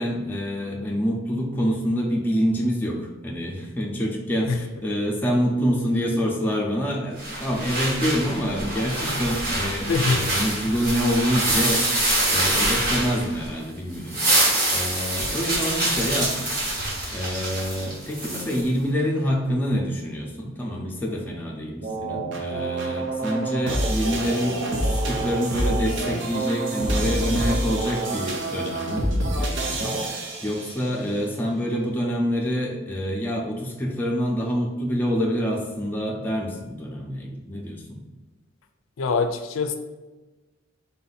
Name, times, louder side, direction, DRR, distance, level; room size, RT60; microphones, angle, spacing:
voice 1, 0.0-14.4 14.7-16.5 17.1-38.0, equal, 10° left, -2 dB, 0.6 m, -26 dB
sound 1, 7.2-13.6 13.9-18.6, right 1 dB, 45° right, 1.2 m, -25 dB
voice 2, 9.9-10.3 39.0-39.8, left 4 dB, 75° left, 7 dB, 0.4 m, -24 dB
sound 2, 21.8-31.1, right 1 dB, 65° right, 0.7 m, -27 dB
3.9 x 2.7 x 4.1 m, 1.2 s
head